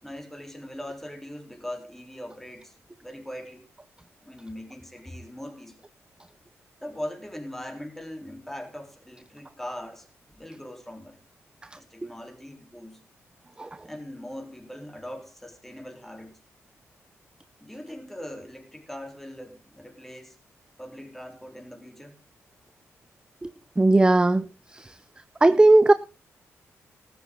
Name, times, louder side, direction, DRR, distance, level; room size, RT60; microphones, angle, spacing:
voice 1, 0.0-3.7 4.2-5.9 6.8-11.2 11.8-13.0 13.8-16.4 17.6-20.4 20.8-22.2, left 1 dB, 5° left, 4.0 m, -40 dB
voice 2, 23.4-24.9 25.4-25.9, right 2 dB, 15° right, 0.6 m, -19 dB
14.0 x 12.5 x 3.9 m
cardioid pair, 65°, 5 cm